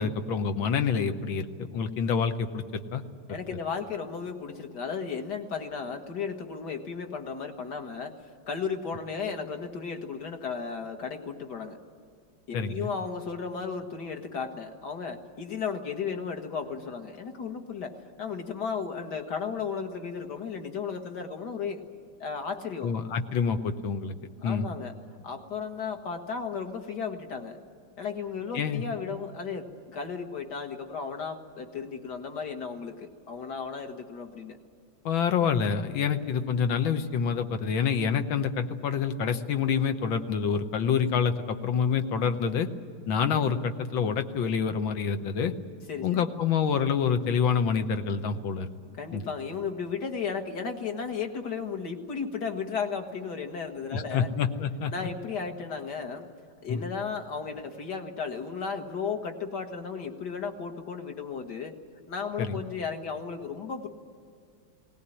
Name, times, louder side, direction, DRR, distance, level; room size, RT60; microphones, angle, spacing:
voice 1, 0.0-3.0 12.5-12.9 22.8-24.1 24.4-24.7 28.5-28.8 35.0-42.7 43.1-45.5 46.0-48.7 49.1-49.2 53.9-54.9 56.7-56.8 62.4-62.6, left 6 dB, 80° left, 8 dB, 1.8 m, -27 dB
voice 2, 3.3-8.1 8.5-11.8 12.5-21.8 22.2-22.9 24.4-24.9 25.2-27.6 28.0-34.6 45.9-46.3 49.0-54.3 54.9-56.3 56.6-61.8 62.1-63.9, left 5 dB, 55° left, 4 dB, 2.1 m, -34 dB
20.0 x 18.5 x 10.0 m, 2.3 s
omnidirectional pair, 2.1 m